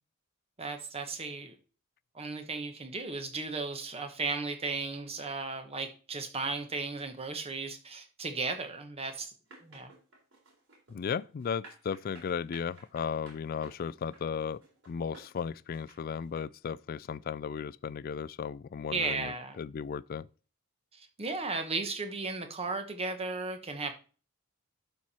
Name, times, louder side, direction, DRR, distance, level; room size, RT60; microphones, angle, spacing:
voice 1, 0.6-1.6 2.1-9.3 9.6-9.9 18.9-19.6 20.9-23.9, right 3 dB, 30° right, 1.1 m, -35 dB
sound 1, 9.5-16.4, right 2 dB, 60° right, 4.2 m, -55 dB
voice 2, 10.9-20.3, left 6 dB, 45° left, 0.3 m, -35 dB
12.0 x 4.5 x 4.3 m
head